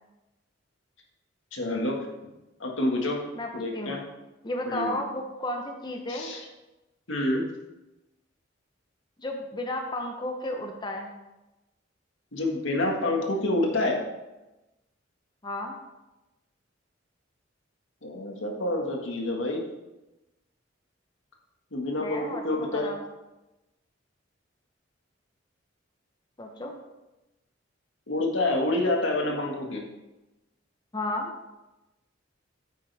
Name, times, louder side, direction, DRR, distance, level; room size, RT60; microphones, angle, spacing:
voice 1, 1.5-2.0 2.6-3.2 3.5-4.0 4.7-5.0 6.1-6.4 7.1-7.4 12.3-14.0 18.0-19.6 21.7-22.9 28.1-29.8, left 2 dB, 85° left, 0 dB, 1.8 m, -27 dB
voice 2, 3.3-3.9 4.4-6.3 9.2-11.1 15.4-15.8 22.0-22.4 22.7-23.0 26.4-26.8 30.9-31.3, left 1 dB, 25° left, 2 dB, 0.9 m, -33 dB
9.2 x 8.7 x 3.5 m, 1.0 s
head